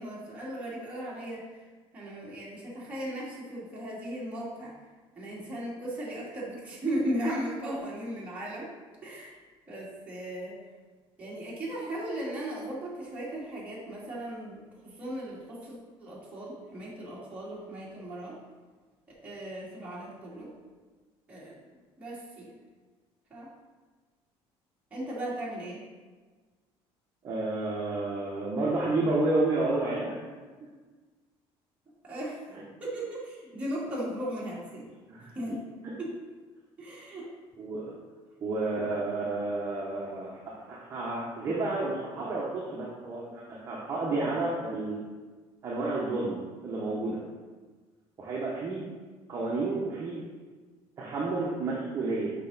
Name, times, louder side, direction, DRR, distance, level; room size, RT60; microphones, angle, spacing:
voice 1, 0.0-4.9 5.1-8.7 9.0-9.4 9.7-10.7 11.2-18.4 19.2-20.6 21.3-22.6 23.3-23.5 24.9-25.8 32.0-32.4 32.8-34.8 35.3-35.6 36.0-36.2 36.8-37.3, right 1 dB, 15° right, -7 dB, 2.0 m, -37 dB
voice 2, 27.2-30.2 35.1-35.3 37.6-37.9 38.4-45.0 45.6-47.2 48.2-48.8 49.3-50.2 51.0-52.3, right 2 dB, 30° right, -5 dB, 0.9 m, -30 dB
6.5 x 5.1 x 4.0 m, 1.4 s
cardioid pair, 175°, 11 cm